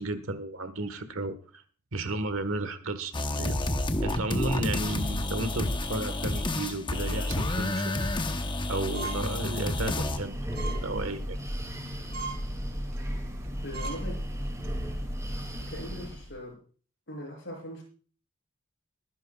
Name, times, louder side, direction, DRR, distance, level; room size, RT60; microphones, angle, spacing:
voice 1, 0.0-1.6 1.9-3.6 4.0-7.9 8.7-11.4, right 2 dB, 75° right, 11 dB, 1.4 m, -33 dB
sound 1, 3.1-10.2, left 1 dB, 25° left, 0.9 m, -30 dB
sound 2, 8.9-9.3 9.7-9.9 10.5-10.8 11.2-11.4 11.8-11.9 12.1-12.4 12.9-13.1 13.4-13.5 13.7-14.0 14.4-14.7, right 4 dB, 50° right, 2.6 m, -38 dB
Breathing, 9.7-16.3, equal, 15° right, 2.4 m, -35 dB
voice 2, 13.6-14.2 15.6-16.6 17.1-17.8, left 1 dB, 60° left, 0 dB, 7.2 m, -40 dB
22.0 x 10.5 x 2.3 m, 0.41 s
head